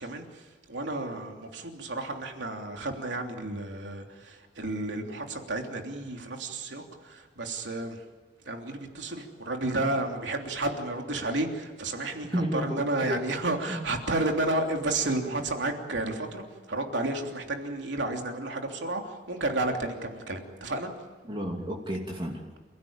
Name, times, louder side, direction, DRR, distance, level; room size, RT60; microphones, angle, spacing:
voice 1, 0.0-8.0 8.4-20.9, right 2 dB, 80° right, 3 dB, 3.2 m, -32 dB
voice 2, 12.3-13.2 13.7-13.8 21.3-22.4, equal, 30° right, -1 dB, 2.8 m, -31 dB
29.0 x 16.0 x 8.9 m, 1.4 s
head